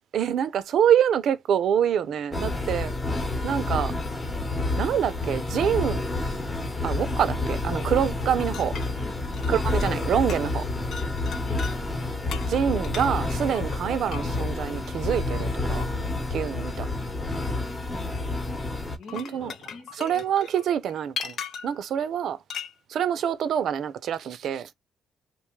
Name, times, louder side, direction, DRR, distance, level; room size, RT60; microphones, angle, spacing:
voice 1, 0.1-2.9 3.4-3.9 4.8-6.0 6.8-8.7 9.5-10.6 12.5-15.9 16.3-16.9 19.1-19.5 20.0-21.3 21.6-22.4 22.9-24.7, right 9 dB, 70° right, 0.5 m, -26 dB
sound 1, 2.3-19.0, left 2 dB, 25° left, 0.9 m, -29 dB
sound 2, 8.4-10.0 10.3-10.6 10.9-11.8 12.3-14.5 15.8-15.9 18.9-21.8 22.5-22.7, left 7 dB, 65° left, 0.4 m, -38 dB
voice 2, 8.8-9.4 11.4-11.9 19.0-20.2, left 3 dB, 90° left, 1.7 m, -44 dB
3.0 x 2.3 x 3.1 m
cardioid pair, 90°, 0 cm